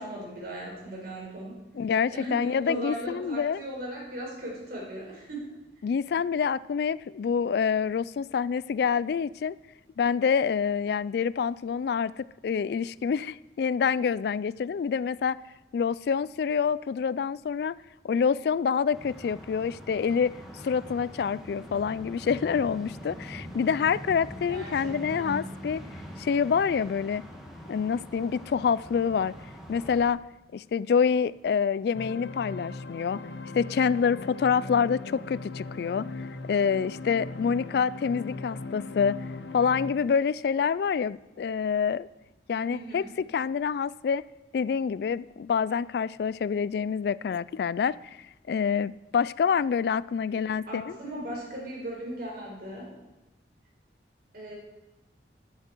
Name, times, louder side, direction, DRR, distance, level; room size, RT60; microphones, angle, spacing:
voice 1, 0.0-1.6 2.1-5.6 24.5-25.4 42.7-43.2 50.7-52.9 54.3-54.5, right 1 dB, 55° right, -2 dB, 5.2 m, -38 dB
voice 2, 1.7-3.6 5.8-9.6 10.0-15.4 15.7-17.8 18.0-20.3 20.6-25.8 26.2-27.2 27.7-29.3 29.7-30.2 30.5-33.2 33.5-39.2 39.5-42.1 42.5-44.2 44.5-48.2 48.5-50.9, left 6 dB, 60° left, 19 dB, 0.3 m, -27 dB
sound 1, 18.9-30.1, equal, ahead, 2.2 m, -43 dB
sound 2, 31.9-39.9, left 3 dB, 80° left, 0.9 m, -39 dB
14.0 x 11.0 x 4.6 m, 1.0 s
head